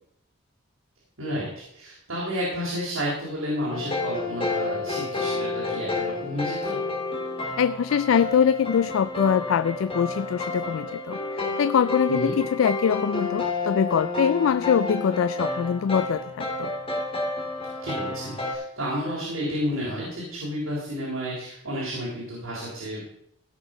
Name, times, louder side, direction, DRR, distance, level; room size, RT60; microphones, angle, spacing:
voice 1, 1.7-6.8 12.1-12.3 17.8-23.1, equal, 75° right, -6 dB, 4.2 m, -31 dB
sound 1, 3.7-18.5, left 2 dB, 25° left, 2.3 m, -30 dB
voice 2, 7.6-16.7, left 7 dB, 75° left, 15 dB, 0.3 m, -23 dB
16.5 x 6.1 x 5.1 m, 0.73 s
head